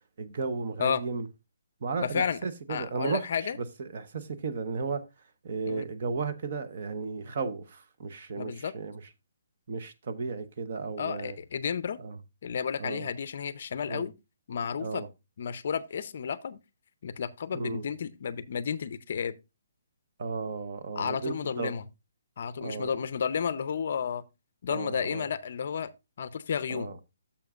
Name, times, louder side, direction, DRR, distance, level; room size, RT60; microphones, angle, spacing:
voice 1, 0.2-1.3 1.8-3.2 3.6-5.1 5.4-9.0 9.7-11.4 12.0-12.2 12.8-13.1 13.9-14.1 14.8-15.1 17.5-17.9 20.2-21.7 22.6-22.9 24.7-25.3 26.7-27.0, right 4 dB, 40° right, 0.8 m, -34 dB
voice 2, 2.0-2.4 2.7-3.6 5.7-5.8 8.4-8.7 11.0-12.0 12.4-14.1 14.5-15.0 15.4-16.6 17.0-19.3 21.0-21.8 22.4-24.2 24.6-25.9 26.2-26.9, left 7 dB, 45° left, 0.5 m, -32 dB
10.5 x 7.0 x 2.4 m
hypercardioid pair, 175°, 0 cm